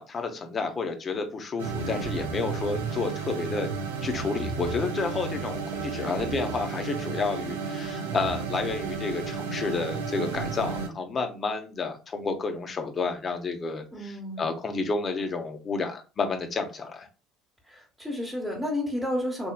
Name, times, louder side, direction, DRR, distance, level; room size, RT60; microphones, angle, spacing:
voice 1, 0.0-3.7 4.0-17.1, left 4 dB, 35° left, 5 dB, 0.9 m, -30 dB
sound 1, 1.6-10.9, right 5 dB, 90° right, 0.6 m, -33 dB
voice 2, 13.9-14.4 17.7-19.5, left 1 dB, ahead, -2 dB, 1.2 m, -31 dB
4.4 x 3.0 x 2.3 m, 0.33 s
hypercardioid pair, 70°, 0 cm